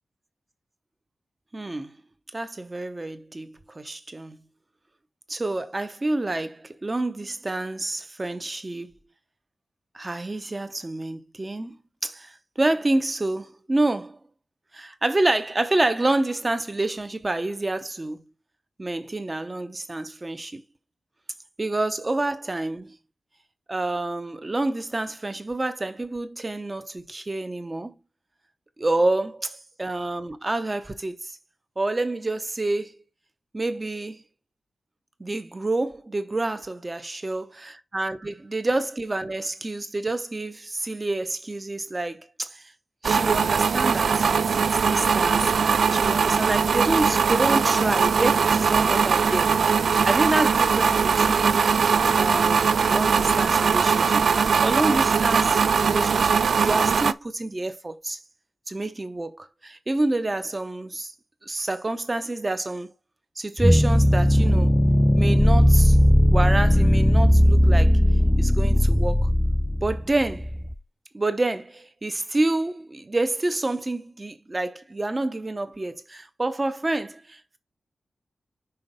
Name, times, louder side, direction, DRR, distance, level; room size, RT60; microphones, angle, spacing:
voice 1, 1.5-2.0 2.3-4.4 5.3-8.9 9.9-14.2 14.7-18.2 18.8-20.6 21.6-23.0 23.7-27.9 28.8-31.4 31.8-33.0 33.5-34.2 35.2-42.7 43.0-45.5 45.9-51.7 52.1-58.2 58.7-61.1 61.4-62.9 63.4-64.8 65.1-66.0 66.3-68.0 68.4-69.3 69.8-70.5 71.1-77.6, right 2 dB, 20° right, 0.8 m, -28 dB
sound 1, 43.0-57.1, right 6 dB, 70° right, 0.4 m, -21 dB
sound 2, 63.6-70.7, equal, 5° left, 0.3 m, -18 dB
5.7 x 4.5 x 5.3 m
wide cardioid pair, 150°, 0 cm